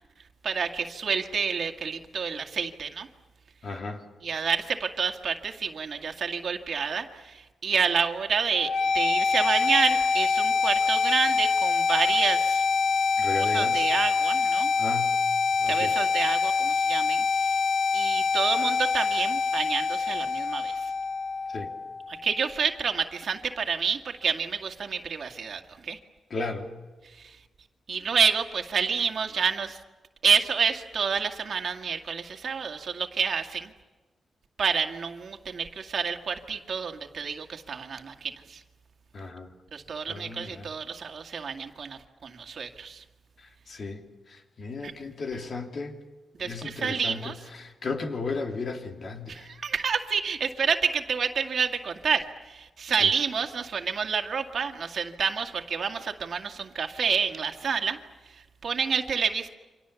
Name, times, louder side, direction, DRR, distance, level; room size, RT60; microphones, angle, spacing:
voice 1, 0.4-3.1 4.2-12.6 13.4-14.7 15.7-17.2 17.9-20.9 22.1-26.0 27.0-27.4 27.9-29.8 30.2-33.7 34.6-38.6 39.7-43.0 44.8-44.9 45.3-45.4 46.4-47.5 49.3-58.0 58.3-59.5, right 6 dB, 60° right, 5 dB, 2.1 m, -29 dB
voice 2, 3.6-4.0 13.2-13.8 14.8-15.1 15.6-15.9 21.5-21.7 26.3-26.7 39.1-39.5 40.1-40.7 43.7-44.0 44.6-46.0 46.4-47.3 47.6-49.5, left 3 dB, 50° left, 3 dB, 3.2 m, -34 dB
sound 1, 8.5-22.5, left 5 dB, 85° left, 1.2 m, -25 dB
29.5 x 26.0 x 7.1 m, 1.2 s
wide cardioid pair, 120°, 0 cm